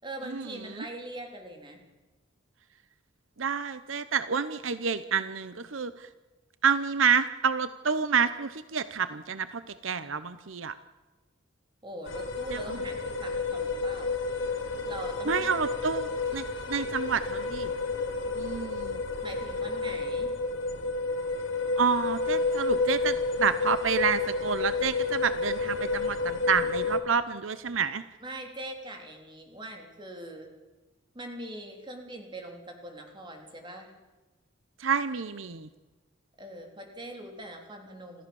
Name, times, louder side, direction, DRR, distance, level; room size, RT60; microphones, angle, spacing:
voice 1, 0.0-1.8 11.8-14.2 14.9-16.1 19.2-20.3 28.2-30.5 31.1-33.9 36.4-38.2, right 1 dB, 25° right, 3 dB, 3.5 m, -42 dB
voice 2, 3.4-6.1 6.6-10.7 12.5-12.6 15.3-17.7 18.4-19.0 21.8-28.0 34.8-35.7, right 6 dB, 80° right, 13 dB, 0.9 m, -29 dB
sound 1, 12.1-27.0, left 3 dB, 75° left, 2.5 m, -30 dB
27.5 x 14.5 x 7.1 m, 1.2 s
head